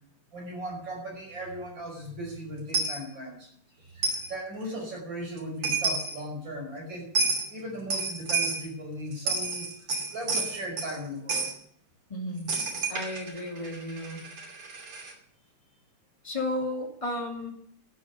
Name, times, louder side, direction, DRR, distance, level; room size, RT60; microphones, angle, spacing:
voice 1, 0.3-3.5 3.8-7.1 7.5-11.5, equal, 60° right, 0 dB, 6.0 m, -37 dB
Coin (dropping), 2.7-3.0 4.0-4.3 5.4-5.5 5.6-6.2 7.1-7.5 7.9-8.7 9.1-11.0 11.3-11.5 12.5-15.1, right 4 dB, 90° right, 3.7 m, -29 dB
voice 2, 12.1-12.5 12.9-14.2 16.2-17.5, left 1 dB, 15° left, 0 dB, 2.5 m, -33 dB
12.5 x 8.2 x 8.3 m, 0.65 s
omnidirectional pair, 2.3 m